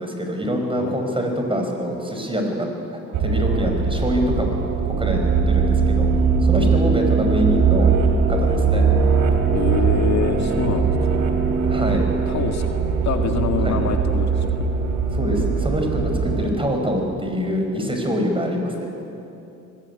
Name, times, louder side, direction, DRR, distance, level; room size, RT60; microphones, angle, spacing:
voice 1, 0.0-2.7 3.2-6.1 6.4-7.9 8.3-8.8 11.7-12.1 13.6-13.8 15.1-18.9, equal, 15° right, 3 dB, 5.0 m, -25 dB
sound 1, 3.1-16.5, right 5 dB, 85° right, 2.8 m, -20 dB
voice 2, 9.5-11.1 12.3-12.7 13.0-14.5, left 7 dB, 65° left, 5 dB, 1.9 m, -25 dB
24.0 x 16.5 x 9.8 m, 2.8 s
cardioid pair, 90°, 30 cm